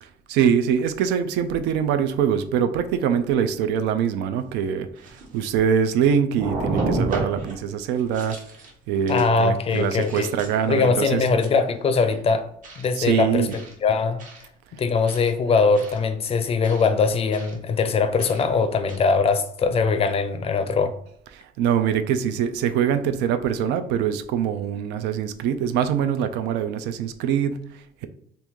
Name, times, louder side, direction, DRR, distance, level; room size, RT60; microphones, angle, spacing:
voice 1, 0.0-8.4 8.9-11.2 12.9-13.5 21.3-28.1, right 8 dB, 90° right, 10 dB, 0.4 m, -23 dB
sound 1, 4.4-4.5 5.0-5.9 6.3-7.6 8.0-8.7 9.1-9.3 9.7-10.7 11.2-11.6 12.6-12.9 13.5-13.7 14.2-14.4 15.1-15.3 15.7-16.0 16.6-16.9 17.3-17.5 18.2-18.4 18.9-19.0, right 2 dB, 50° right, 0.9 m, -31 dB
voice 2, 9.1-10.3 10.7-12.5 12.8-13.5 13.8-14.2 14.7-20.9, left 4 dB, 35° left, 9 dB, 0.4 m, -21 dB
2.9 x 2.6 x 3.5 m, 0.72 s
cardioid pair, 110°, 17 cm